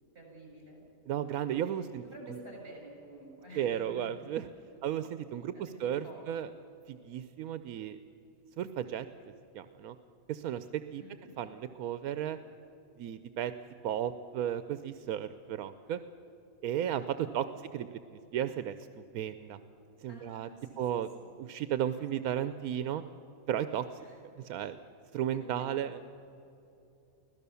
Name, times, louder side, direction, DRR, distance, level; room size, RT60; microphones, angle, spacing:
voice 1, 0.1-0.8 1.6-4.1 5.5-6.3 11.0-11.3 17.2-17.6 20.1-21.3 24.0-24.2 25.6-25.7, right 1 dB, 45° right, -1 dB, 7.4 m, -50 dB
voice 2, 1.1-2.0 3.5-4.4 4.8-6.5 6.9-8.0 8.6-9.1 9.5-9.9 10.3-11.0 11.4-12.4 13.0-13.5 13.8-16.0 16.6-17.5 17.7-19.6 20.0-20.5 20.8-21.1 21.4-23.0 23.5-23.9 24.4-24.8 25.1-26.0, right 10 dB, 85° right, 12 dB, 1.1 m, -34 dB
24.5 x 16.5 x 7.0 m, 2.9 s
omnidirectional pair, 1.5 m